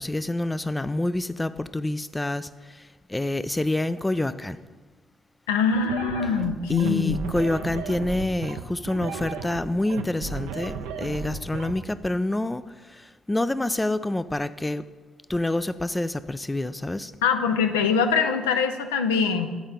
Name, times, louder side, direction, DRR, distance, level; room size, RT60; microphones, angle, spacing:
voice 1, 0.0-4.6 6.7-12.6 12.9-14.8 15.3-17.1, left 1 dB, 15° left, 14 dB, 0.3 m, -27 dB
voice 2, 5.5-7.2 17.2-19.5, left 6 dB, 80° left, 7 dB, 0.5 m, -23 dB
sound 1, 5.7-11.7, right 5 dB, 75° right, 0.5 m, -34 dB
9.2 x 4.4 x 5.1 m, 1.4 s
hypercardioid pair, 50°, 0 cm